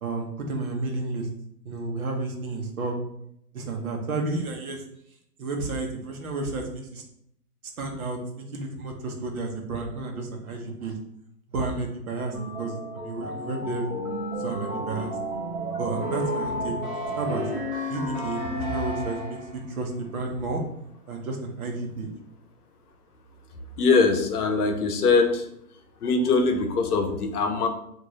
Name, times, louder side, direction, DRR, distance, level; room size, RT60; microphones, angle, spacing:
voice 1, 0.0-1.3 1.6-2.9 3.5-4.8 5.4-7.0 7.8-10.9 11.5-13.9 14.4-15.1 15.8-19.2 19.5-20.6 21.1-22.1, right 3 dB, 65° right, 2 dB, 0.9 m, -31 dB
sound 1, 12.3-19.6, equal, 30° right, 1.3 m, -32 dB
voice 2, 23.8-25.5 26.0-27.7, left 4 dB, 70° left, 5 dB, 0.7 m, -22 dB
3.7 x 2.6 x 3.1 m, 0.74 s
hypercardioid pair, 180°, 47 cm